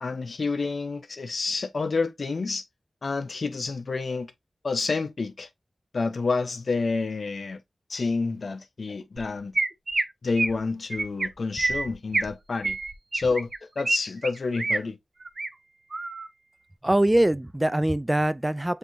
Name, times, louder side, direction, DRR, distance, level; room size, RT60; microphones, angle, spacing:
voice 1, 0.0-2.6 3.0-4.3 4.6-5.5 5.9-7.6 7.9-9.6 10.2-12.8 13.1-13.5 13.8-15.0, left 4 dB, 70° left, 0.7 m, -29 dB
Chirp tweet, 9.2-9.3 9.5-10.0 10.4-10.6 10.9-11.3 11.6-12.3 12.6-14.0 14.2-14.8 15.2-15.5 15.9-16.3, right 2 dB, 55° right, 0.7 m, -27 dB
voice 2, 16.8-18.8, right 1 dB, 20° right, 0.4 m, -23 dB
7.7 x 2.8 x 2.5 m
cardioid pair, 45°, 0 cm